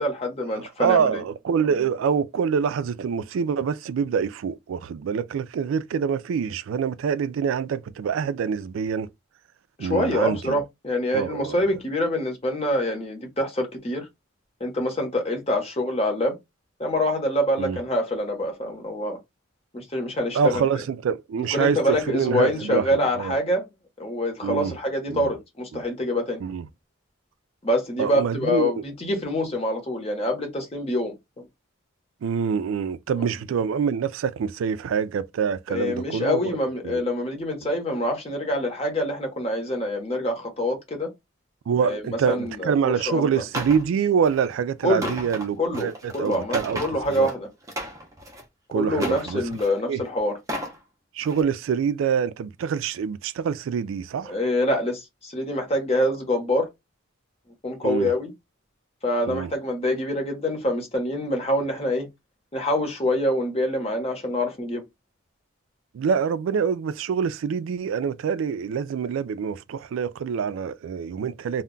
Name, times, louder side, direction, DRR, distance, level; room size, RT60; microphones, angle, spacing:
voice 1, 0.0-1.2 9.8-14.1 14.6-16.4 16.8-19.2 19.7-20.6 21.4-23.7 24.0-26.4 27.6-31.1 33.2-33.3 35.7-41.1 41.8-43.3 44.8-45.2 45.6-47.5 48.7-50.3 54.3-56.7 57.6-58.3 59.0-62.1 62.5-64.8, left 1 dB, 30° left, 0.8 m, -25 dB
voice 2, 0.5-9.1 9.8-10.6 11.1-11.6 17.6-17.8 20.3-23.4 24.4-24.7 25.1-25.3 25.7-25.8 26.4-26.6 28.0-28.8 32.2-36.4 36.8-37.1 41.7-46.8 47.1-47.3 48.7-49.4 49.9-50.0 51.1-54.4 57.8-58.1 59.3-59.5 65.9-71.6, right 7 dB, 75° right, 0.3 m, -26 dB
sound 1, 43.5-43.8 44.2-44.5 44.9-47.3 47.6-48.4 48.9-49.8 50.3-50.8 51.2-51.4, equal, 15° right, 0.5 m, -34 dB
2.2 x 2.1 x 3.7 m
head